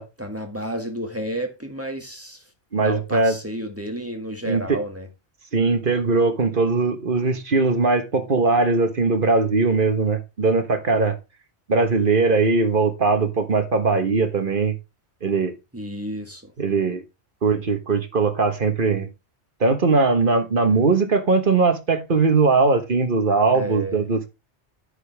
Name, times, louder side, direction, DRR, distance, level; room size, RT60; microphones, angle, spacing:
voice 1, 0.2-2.4 2.8-5.1 15.7-16.5 23.5-24.1, right 1 dB, 10° right, 1.8 m, -31 dB
voice 2, 2.7-3.4 4.4-4.8 5.5-11.2 11.7-14.8 15.2-15.5 16.6-17.0 17.4-19.1 19.6-24.3, right 3 dB, 50° right, 1.4 m, -20 dB
10.0 x 6.8 x 3.4 m
omnidirectional pair, 1.2 m